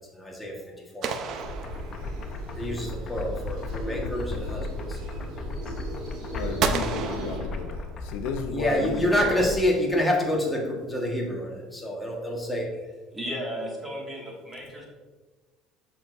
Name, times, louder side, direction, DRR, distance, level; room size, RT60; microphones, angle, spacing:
voice 1, 0.1-0.5 0.9-1.4 2.6-5.0 8.5-12.7, left 1 dB, 5° left, -2 dB, 1.5 m, -27 dB
sound 1, 1.0-2.5 6.6-8.2, right 6 dB, 55° right, 0.5 m, -31 dB
sound 2, 1.2-7.4, right 2 dB, 70° right, 1.8 m, -39 dB
sound 3, 1.4-9.7, left 2 dB, 35° left, 0.7 m, -35 dB
voice 2, 6.3-9.3, left 5 dB, 85° left, 6 dB, 0.6 m, -34 dB
voice 3, 13.1-14.9, equal, 15° right, -3 dB, 2.0 m, -34 dB
7.4 x 6.1 x 2.6 m, 1.3 s
cardioid pair, 130°, 0 cm